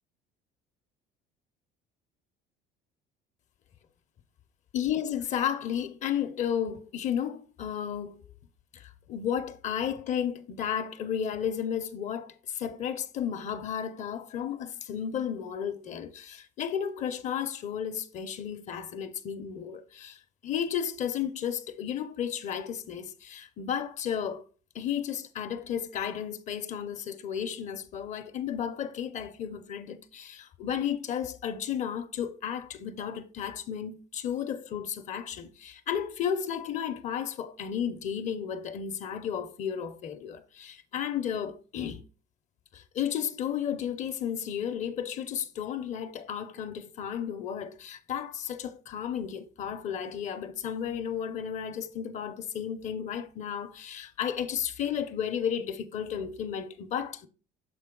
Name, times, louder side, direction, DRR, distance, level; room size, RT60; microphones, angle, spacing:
voice 1, 4.7-8.2 8.7-24.4 24.7-42.0 42.7-57.3, left 8 dB, 45° left, 0.6 m, -33 dB
6.7 x 4.3 x 3.7 m
cardioid pair, 130°, 17 cm